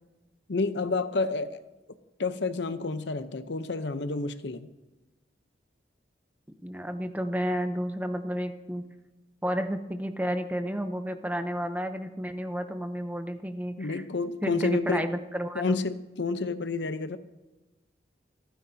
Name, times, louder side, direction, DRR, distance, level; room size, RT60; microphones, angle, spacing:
voice 1, 0.5-1.6 2.2-4.7 13.8-15.1 15.5-17.2, left 3 dB, 70° left, 11 dB, 0.7 m, -29 dB
voice 2, 6.6-8.8 9.4-14.0 14.4-15.8, equal, 10° right, 8 dB, 0.7 m, -31 dB
27.5 x 9.6 x 2.8 m, 1.1 s
head